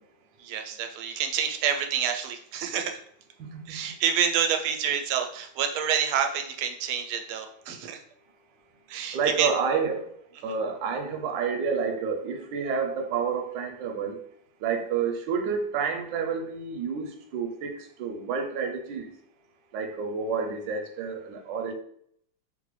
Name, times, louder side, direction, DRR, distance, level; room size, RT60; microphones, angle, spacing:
voice 1, 0.4-2.9 3.7-8.0 8.9-9.5, right 8 dB, 90° right, 4 dB, 1.4 m, -28 dB
voice 2, 3.4-3.9 9.1-10.0 10.4-14.2 14.6-19.1 19.7-21.7, right 5 dB, 70° right, 4 dB, 1.1 m, -29 dB
4.1 x 2.1 x 3.1 m, 0.66 s
omnidirectional pair, 2.3 m